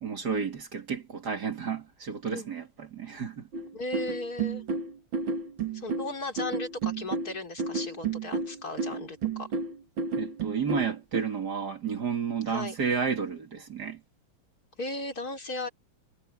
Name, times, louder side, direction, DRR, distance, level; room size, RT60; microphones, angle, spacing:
voice 1, 0.0-3.5 10.2-14.0, right 6 dB, 55° right, 2.8 m, -31 dB
sound 1, 3.5-11.2, right 4 dB, 75° right, 2.9 m, -31 dB
voice 2, 3.7-4.6 5.7-9.5 12.5-12.8 14.8-15.7, left 2 dB, 45° left, 3.9 m, -36 dB
omnidirectional pair, 2.2 m